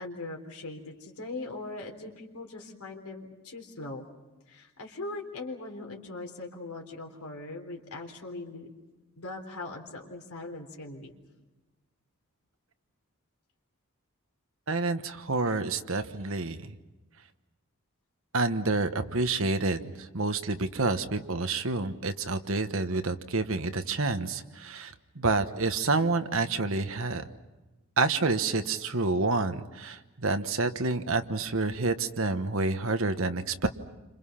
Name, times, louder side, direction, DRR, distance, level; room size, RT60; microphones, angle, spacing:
voice 1, 0.0-4.1 4.5-8.7 9.2-11.1, left 2 dB, 85° left, 1 dB, 3.7 m, -40 dB
voice 2, 14.7-16.7 18.3-27.3 28.0-33.7, right 3 dB, 65° right, 8 dB, 1.2 m, -28 dB
29.5 x 26.5 x 5.8 m, 1.1 s
head